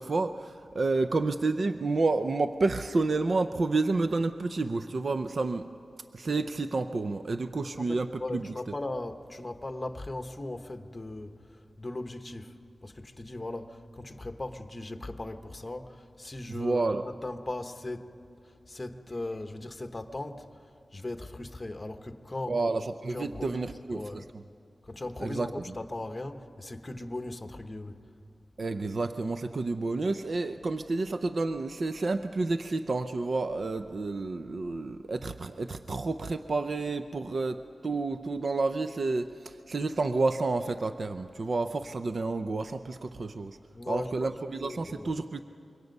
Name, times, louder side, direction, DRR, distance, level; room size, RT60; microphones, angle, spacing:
voice 1, 0.0-5.7 6.1-8.5 16.5-17.0 22.5-24.2 25.2-25.5 28.6-43.6 43.9-45.4, right 3 dB, 55° right, 9 dB, 0.5 m, -30 dB
voice 2, 7.6-18.2 18.4-20.7 20.9-22.6 23.1-24.3 24.8-28.0 43.7-45.2, left 2 dB, 25° left, 7 dB, 1.0 m, -38 dB
26.0 x 23.0 x 5.4 m, 2.6 s
wide cardioid pair, 115°, 0 cm